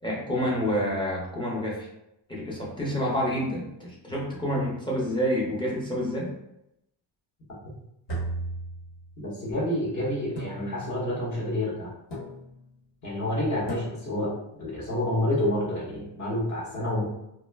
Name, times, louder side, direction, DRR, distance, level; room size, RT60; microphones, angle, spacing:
voice 1, 0.0-1.9 2.3-6.3, equal, 10° left, -5 dB, 0.5 m, -28 dB
sound 1, 8.1-9.3 10.4-11.2 12.1-12.7 13.7-14.3, right 1 dB, 65° left, 1.1 m, -36 dB
voice 2, 9.4-11.9 13.0-14.3 14.6-17.1, left 1 dB, 40° left, -5 dB, 0.9 m, -28 dB
2.3 x 2.0 x 3.2 m, 0.83 s
cardioid pair, 160°, 45 cm